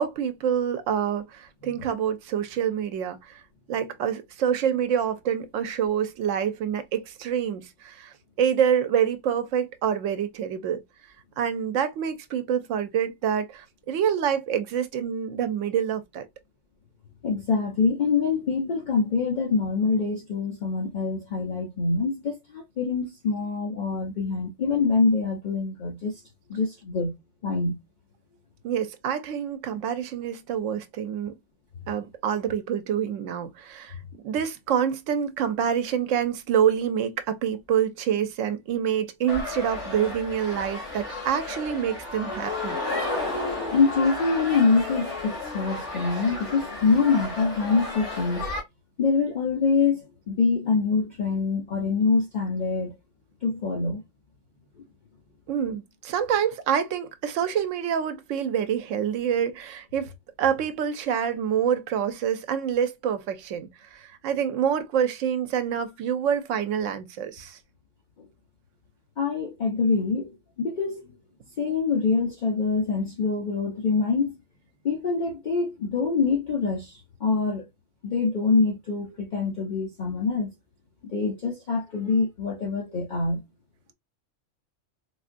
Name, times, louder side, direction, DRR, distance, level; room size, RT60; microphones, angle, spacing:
voice 1, 0.0-3.4 3.7-10.8 11.4-16.3 28.6-31.3 31.9-34.0 34.2-42.8 55.5-60.1 60.4-67.6, right 8 dB, 85° right, 0.9 m, -27 dB
voice 2, 17.2-26.2 26.5-27.1 27.4-27.8 43.7-48.5 49.0-52.9 53.4-54.0 69.2-71.2 71.6-74.4 74.8-77.7 78.0-80.5 81.1-83.4, left 4 dB, 45° left, 0.7 m, -25 dB
sound 1, 39.3-48.6, left 2 dB, 70° left, 2.2 m, -33 dB
3.8 x 2.4 x 2.5 m
omnidirectional pair, 1.3 m